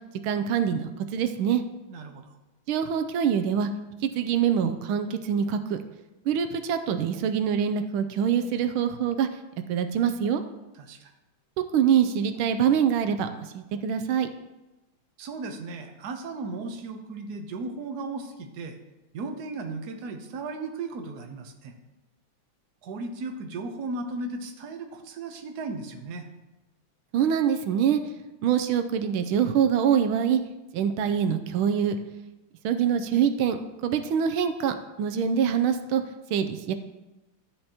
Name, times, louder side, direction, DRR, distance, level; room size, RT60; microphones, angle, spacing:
voice 1, 0.2-1.6 2.7-3.7 4.2-5.8 6.3-9.3 9.7-10.4 11.7-13.3 13.5-14.3 27.1-28.0 28.4-30.4 30.7-32.0 32.6-33.6 33.8-36.0 36.3-36.7, right 8 dB, 85° right, 8 dB, 1.5 m, -24 dB
voice 2, 1.9-2.2 10.7-11.1 15.2-18.8 19.1-21.7 22.8-26.3, right 3 dB, 55° right, 5 dB, 1.3 m, -36 dB
12.0 x 8.6 x 2.9 m, 1.0 s
omnidirectional pair, 2.3 m